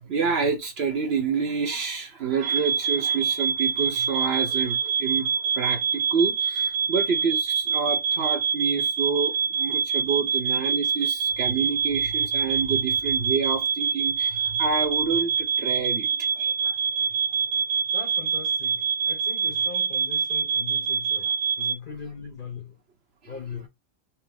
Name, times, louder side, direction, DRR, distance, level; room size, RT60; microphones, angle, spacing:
voice 1, 0.0-16.7, right 5 dB, 55° right, 1.0 m, -28 dB
sound 1, 2.4-21.7, right 6 dB, 85° right, 1.2 m, -25 dB
voice 2, 17.9-22.8 23.3-23.7, left 6 dB, 50° left, 0.7 m, -40 dB
6.0 x 2.0 x 3.4 m
omnidirectional pair, 1.4 m